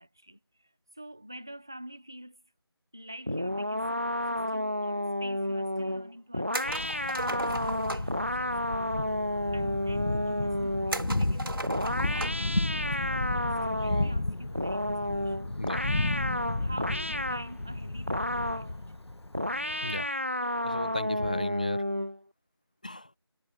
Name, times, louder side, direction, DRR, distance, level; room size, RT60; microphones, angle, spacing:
voice 1, 0.0-2.4 2.9-9.0 9.5-11.8 12.1-15.5 16.6-19.1, right 1 dB, 10° right, 0.9 m, -47 dB
sound 1, 3.3-11.1 11.7-14.2 14.5-17.5 18.1-18.7 19.3-22.2, left 1 dB, 30° right, 0.4 m, -31 dB
sound 2, 6.5-8.2 10.9-12.5 12.9-13.0 14.6-14.9, right 2 dB, 60° right, 4.3 m, -36 dB
Thunder, 6.6-20.0, left 2 dB, 80° left, 1.9 m, -33 dB
voice 2, 20.6-21.8 22.8-23.1, left 1 dB, 20° left, 1.0 m, -35 dB
figure-of-eight pair, 175°, 14 cm